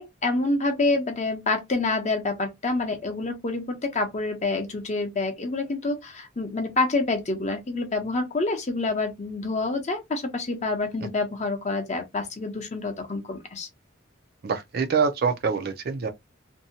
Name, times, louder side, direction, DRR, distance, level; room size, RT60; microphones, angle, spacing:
voice 1, 0.0-13.7, left 3 dB, 35° left, 0.7 m, -27 dB
voice 2, 14.4-16.1, right 5 dB, 50° right, 0.4 m, -25 dB
2.6 x 2.2 x 2.7 m
head